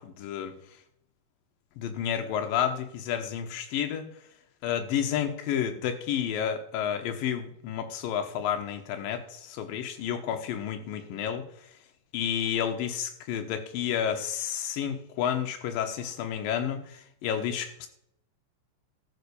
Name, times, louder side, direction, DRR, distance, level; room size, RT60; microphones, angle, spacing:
voice 1, 0.2-0.5 1.8-4.0 4.6-11.4 12.1-17.9, left 9 dB, 85° left, 6 dB, 2.8 m, -30 dB
14.0 x 5.9 x 6.9 m, 0.70 s
omnidirectional pair, 3.9 m